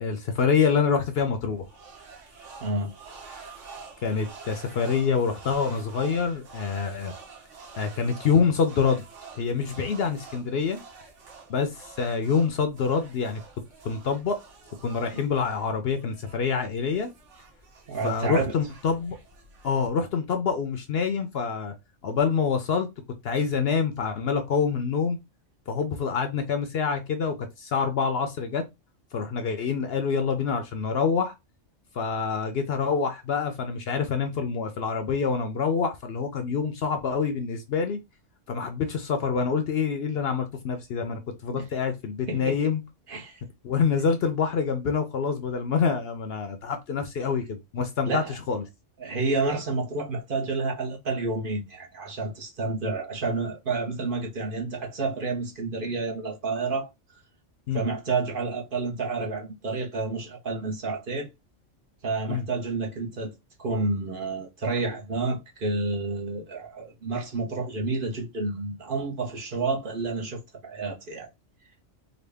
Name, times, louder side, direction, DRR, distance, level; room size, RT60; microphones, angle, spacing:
voice 1, 0.0-1.7 4.0-7.1 7.8-9.0 9.4-10.8 11.5-13.4 13.8-14.4 14.8-17.1 18.0-19.2 19.6-21.7 22.0-22.9 23.2-25.2 25.7-28.6 29.1-31.3 31.9-38.0 38.5-42.8 43.6-48.6 57.7-57.8 62.3-62.4, left 5 dB, 60° left, 0.7 m, -26 dB
sound 1, 1.1-19.9, right 4 dB, 70° right, 1.3 m, -48 dB
voice 2, 2.6-2.9 17.9-18.5 41.5-41.7 42.3-42.6 43.1-43.4 48.0-48.3 49.0-56.9 57.7-61.3 62.0-63.3 63.6-71.3, right 3 dB, 50° right, 0.9 m, -29 dB
3.9 x 2.2 x 3.3 m
omnidirectional pair, 1.3 m